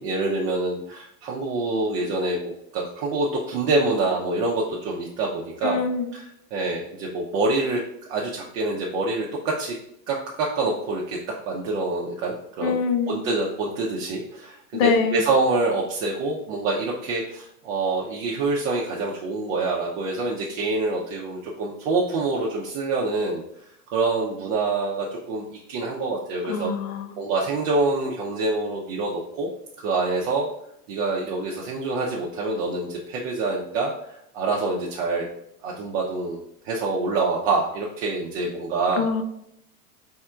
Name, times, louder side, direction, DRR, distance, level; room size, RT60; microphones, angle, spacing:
voice 1, 0.0-5.8 6.1-6.2 6.5-7.8 8.1-9.8 10.1-11.2 11.5-12.8 13.1-23.4 23.9-26.7 27.2-29.5 29.8-30.5 30.9-35.3 35.6-39.1, right 3 dB, 50° right, -3 dB, 0.8 m, -26 dB
voice 2, 5.6-6.1 12.6-13.2 14.7-15.2 26.4-27.2 38.9-39.2, left 5 dB, 55° left, 7 dB, 0.8 m, -24 dB
4.3 x 3.6 x 2.3 m, 0.77 s
hypercardioid pair, 90°, 48 cm